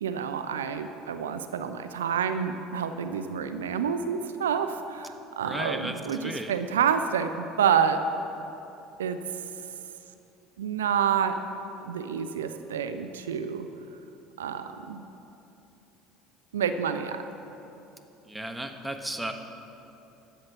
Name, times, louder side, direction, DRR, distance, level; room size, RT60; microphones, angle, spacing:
voice 1, 0.0-8.0 9.0-9.2 10.6-11.4 11.8-13.7 14.4-15.0 16.5-17.2, right 7 dB, 85° right, 9 dB, 0.5 m, -28 dB
voice 2, 5.4-6.0 6.2-6.6 18.3-19.3, right 1 dB, 5° right, 5 dB, 1.1 m, -34 dB
12.5 x 7.9 x 6.0 m, 3.0 s
hypercardioid pair, 70°, 0 cm